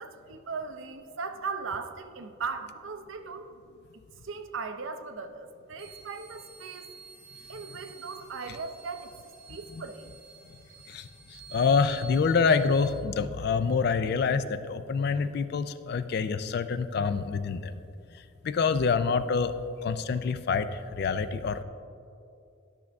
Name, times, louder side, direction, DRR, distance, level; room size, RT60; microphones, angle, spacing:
voice 1, 0.0-3.5 4.2-6.9 7.5-10.1, right 5 dB, 70° right, 8 dB, 0.5 m, -38 dB
sound 1, 5.8-12.9, right 5 dB, 45° right, 1.9 m, -50 dB
voice 2, 10.9-17.7 18.4-19.6 19.8-21.6, left 5 dB, 50° left, 12 dB, 0.3 m, -26 dB
12.0 x 6.1 x 3.4 m, 2.6 s
head